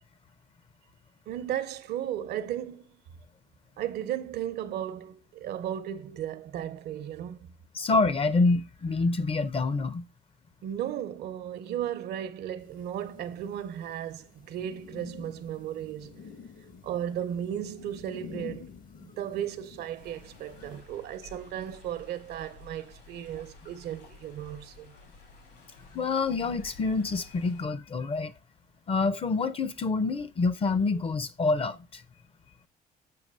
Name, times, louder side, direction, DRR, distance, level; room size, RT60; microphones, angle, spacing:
voice 1, 1.3-2.8 3.8-7.4 10.6-16.3 16.8-18.7 19.0-24.9, right 10 dB, 70° right, 0.8 m, -35 dB
voice 2, 7.7-10.0 25.9-28.3 28.9-32.0, left 3 dB, 35° left, 0.6 m, -27 dB
sound 1, 12.6-20.8, left 6 dB, 50° left, 1.1 m, -49 dB
Stream, 19.9-27.6, left 3 dB, 75° left, 3.2 m, -52 dB
7.7 x 3.0 x 5.3 m
cardioid pair, 110°, 17 cm